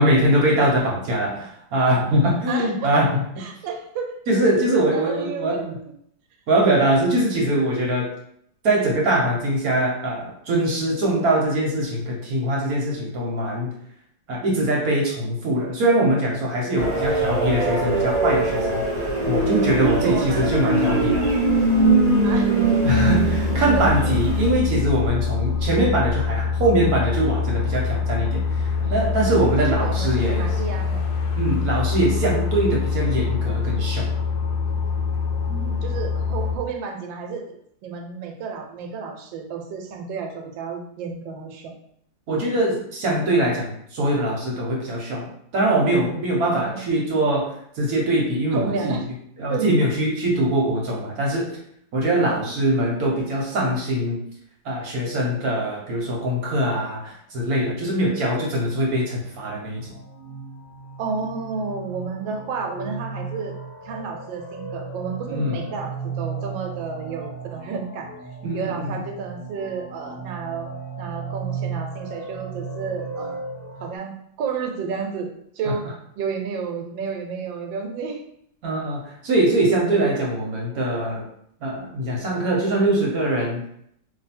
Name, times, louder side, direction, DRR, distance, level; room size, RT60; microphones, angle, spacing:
voice 1, 0.0-3.2 4.3-5.7 6.5-8.1 8.6-13.7 14.3-18.8 19.3-21.3 22.8-30.5 31.4-34.1 42.3-45.3 45.5-49.0 49.4-51.6 51.9-54.2 54.6-59.9 65.3-65.6 68.4-68.9 78.6-81.3 81.6-83.6, right 1 dB, 60° right, -2 dB, 1.1 m, -22 dB
voice 2, 2.5-3.0 3.4-4.2 4.9-5.7 16.8-17.3 19.2-21.1 22.2-22.8 23.7-23.8 28.8-29.1 29.4-31.0 35.5-37.5 37.8-41.7 46.5-47.3 48.5-49.0 49.5-49.7 52.2-52.8 61.0-63.6 63.8-68.1 68.5-70.7 71.0-73.4 73.8-75.8 76.2-78.2, right 5 dB, 90° right, 3 dB, 1.3 m, -32 dB
sound 1, 16.8-24.5, right 2 dB, 30° right, 0.7 m, -21 dB
sound 2, 22.9-36.6, left 5 dB, 75° left, 1.2 m, -25 dB
sound 3, 59.2-74.0, right 4 dB, 55° left, 0.6 m, -35 dB
2.7 x 2.7 x 4.2 m, 0.70 s
omnidirectional pair, 2.0 m